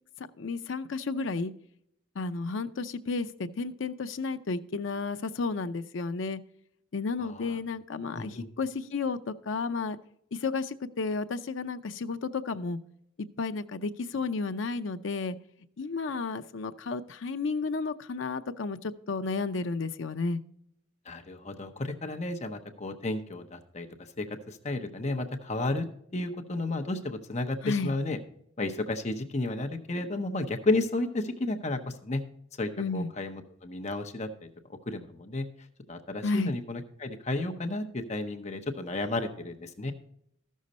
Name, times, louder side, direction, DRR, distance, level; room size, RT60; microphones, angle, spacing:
voice 1, 0.2-1.5 2.2-6.4 6.9-10.0 10.3-12.8 13.2-15.4 15.8-20.4 27.6-27.9 32.8-33.1 36.2-36.6, left 4 dB, 70° left, 9 dB, 0.6 m, -32 dB
voice 2, 7.2-7.6 8.1-8.5 21.1-23.9 24.2-25.9 26.1-28.2 28.6-32.2 32.6-34.5 34.9-35.5 35.9-39.9, left 2 dB, 35° left, 5 dB, 0.8 m, -32 dB
13.5 x 6.4 x 4.1 m, 0.73 s
head